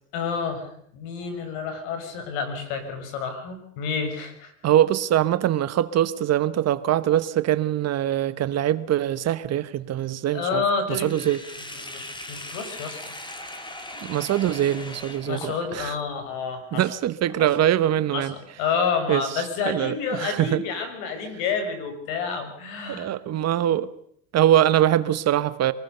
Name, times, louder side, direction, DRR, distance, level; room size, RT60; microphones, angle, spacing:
voice 1, 0.1-4.5 10.3-11.3 11.8-13.2 15.2-16.9 17.4-17.5 18.1-23.1, left 5 dB, 70° left, 8 dB, 6.6 m, -29 dB
voice 2, 4.6-10.6 10.9-11.4 14.0-15.9 16.7-18.3 19.1-19.2 19.7-20.6 22.9-23.9 24.3-25.7, right 11 dB, 35° right, 14 dB, 1.1 m, -23 dB
Sink (filling or washing), 11.0-15.9, left 1 dB, 10° left, 2.7 m, -39 dB
25.5 x 19.5 x 6.8 m, 0.66 s
supercardioid pair, 120°, 43 cm